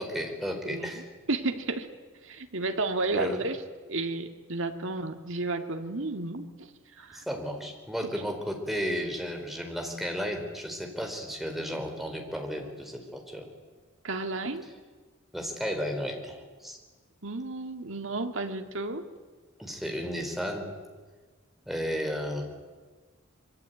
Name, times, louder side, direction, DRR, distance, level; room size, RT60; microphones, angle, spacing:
voice 1, 0.0-1.1 3.1-3.4 7.1-13.5 15.3-16.8 19.6-20.7 21.7-22.5, equal, ahead, 3 dB, 4.3 m, -33 dB
voice 2, 0.6-1.9 2.2-3.6 3.9-6.7 7.0-7.2 14.0-14.6 17.2-19.0, right 2 dB, 65° right, 6 dB, 2.3 m, -32 dB
25.5 x 23.5 x 9.3 m, 1.4 s
head